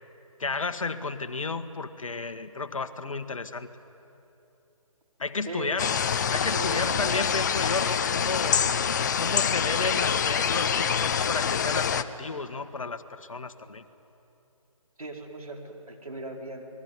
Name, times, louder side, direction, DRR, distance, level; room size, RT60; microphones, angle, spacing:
voice 1, 0.4-3.7 5.2-6.0 6.3-8.6 9.2-13.8, left 4 dB, 70° left, 10 dB, 1.6 m, -32 dB
voice 2, 5.5-6.0 6.5-7.2 15.0-16.6, right 2 dB, 85° right, 1 dB, 4.5 m, -38 dB
sound 1, 5.8-12.0, left 7 dB, 30° left, 0.8 m, -26 dB
27.0 x 21.0 x 9.7 m, 2.9 s
figure-of-eight pair, 150°, 18 cm